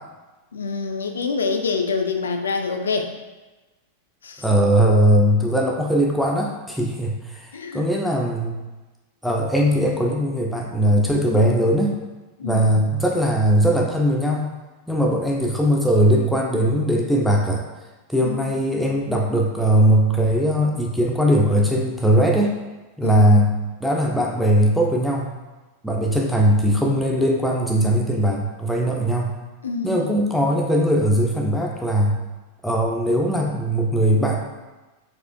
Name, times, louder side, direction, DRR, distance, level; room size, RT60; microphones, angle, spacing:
voice 1, 0.5-3.1 4.2-4.5 7.5-7.9 12.4-12.8 18.2-18.6 23.0-23.4 29.6-30.2, left 4 dB, 70° left, 5 dB, 0.3 m, -26 dB
voice 2, 4.4-8.6 9.2-11.9 12.4-14.5 14.9-17.6 18.1-22.5 23.0-25.4 25.8-29.3 29.8-32.2 32.6-34.5, equal, ahead, -1 dB, 0.4 m, -20 dB
4.2 x 2.4 x 2.5 m, 1.2 s
figure-of-eight pair, 90°, 0 cm